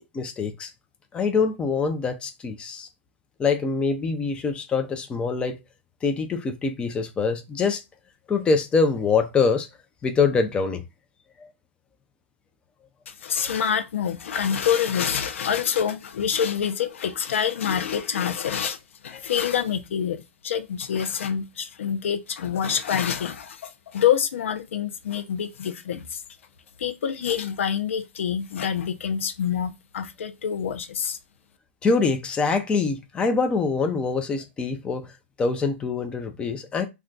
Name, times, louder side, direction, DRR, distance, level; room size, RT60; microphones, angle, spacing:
voice 1, 0.1-0.7 1.1-2.9 3.4-5.6 6.0-7.8 8.3-9.7 10.0-10.8 11.4-11.5 31.8-35.1 35.4-36.9, left 4 dB, 15° left, 0.4 m, -24 dB
voice 2, 13.1-18.8 19.0-26.2 26.8-31.2, left 8 dB, 85° left, 0.5 m, -26 dB
2.3 x 2.2 x 3.8 m
hypercardioid pair, 135°, 7 cm